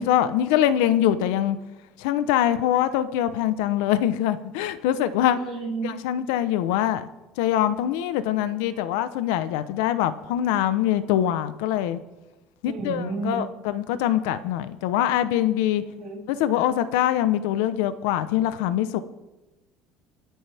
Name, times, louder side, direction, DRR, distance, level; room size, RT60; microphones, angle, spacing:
voice 1, 0.0-1.6 2.0-5.4 5.8-7.1 7.4-12.0 12.6-15.8 16.3-19.0, left 11 dB, 90° left, 12 dB, 0.9 m, -23 dB
voice 2, 5.4-6.0 12.6-13.4 15.8-16.2, right 3 dB, 35° right, -2 dB, 3.0 m, -31 dB
29.5 x 10.0 x 3.5 m, 1.1 s
cardioid pair, 180°, 0 cm